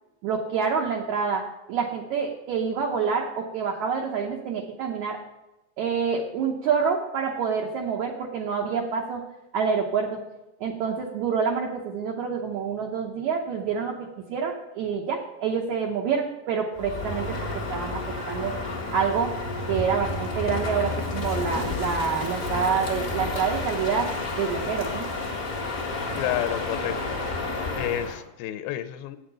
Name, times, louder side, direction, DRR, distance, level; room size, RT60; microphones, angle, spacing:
voice 1, 0.2-5.2 5.8-9.2 9.5-10.2 10.6-14.0 14.3-17.4 17.7-18.0 18.3-18.6 18.9-19.3 19.7-24.1 24.4-25.1, right 6 dB, 75° right, 1 dB, 1.8 m, -27 dB
Crow, 16.8-28.2, left 3 dB, 45° left, 1.0 m, -31 dB
voice 2, 26.1-27.2 27.7-29.2, left 12 dB, 80° left, 11 dB, 2.3 m, -30 dB
8.8 x 6.5 x 6.5 m, 1.0 s
omnidirectional pair, 4.5 m